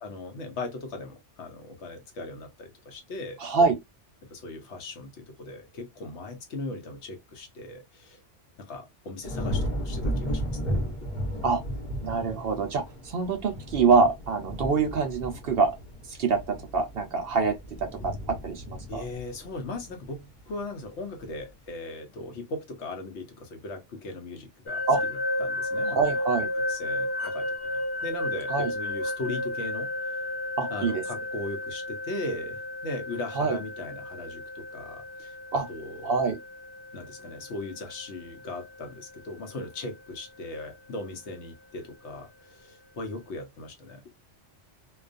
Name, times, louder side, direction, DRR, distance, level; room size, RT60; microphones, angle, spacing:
voice 1, 0.0-3.4 4.3-8.2 8.6-10.8 18.9-24.8 25.4-26.1 26.5-30.2 30.7-35.3 35.7-36.2 36.9-44.0, left 2 dB, 70° left, 1.0 m, -38 dB
voice 2, 3.4-3.8 11.4-11.6 12.0-15.7 16.1-19.0 24.9-25.0 25.9-26.5 28.5-28.7 30.6-31.0 33.4-33.6 35.5-35.7 36.0-36.4, right 4 dB, 60° right, 0.7 m, -25 dB
sound 1, 9.2-20.5 21.0-21.4, equal, 40° left, 1.0 m, -34 dB
sound 2, 24.7-39.5, left 1 dB, 15° left, 0.5 m, -33 dB
2.3 x 2.3 x 2.4 m
omnidirectional pair, 1.2 m